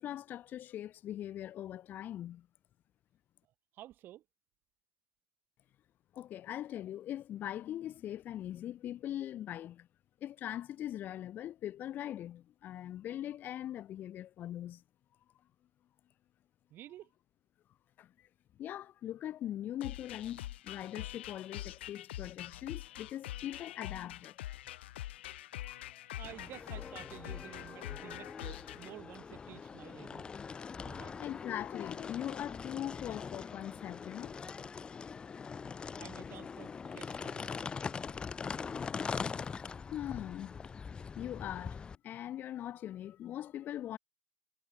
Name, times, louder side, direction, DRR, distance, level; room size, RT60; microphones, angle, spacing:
voice 1, 0.0-2.5 6.1-9.9 10.2-14.8 18.0-18.1 18.6-24.4 25.7-25.8 30.5-30.7 31.2-34.3 39.9-40.6 41.2-44.0, left 12 dB, 30° left, 1.8 m, -41 dB
voice 2, 3.7-4.2 16.7-17.1 26.2-30.3 30.8-31.2 36.0-37.5, right 13 dB, 35° right, 2.3 m, -51 dB
sound 1, 19.8-28.9, left 14 dB, 80° left, 5.4 m, -44 dB
sound 2, 26.2-42.0, left 5 dB, 15° left, 0.7 m, -42 dB
supercardioid pair, 135°, 6 cm